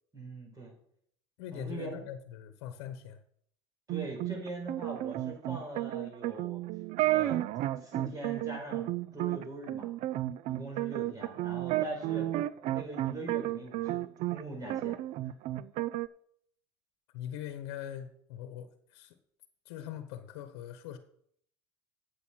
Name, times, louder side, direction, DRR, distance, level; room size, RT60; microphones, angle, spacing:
voice 1, 0.1-0.7 1.5-2.1 3.9-6.6 7.0-7.4 7.8-9.9 10.5-12.3 12.7-14.0 14.3-15.0, right 2 dB, 25° right, 1 dB, 5.2 m, -41 dB
voice 2, 1.4-3.2 17.1-19.2 19.6-21.0, left 10 dB, 75° left, 10 dB, 1.1 m, -42 dB
sound 1, 3.9-14.4 14.7-16.1, right 15 dB, 60° right, 0.5 m, -32 dB
8.4 x 8.0 x 6.3 m, 0.66 s
supercardioid pair, 85°, 14 cm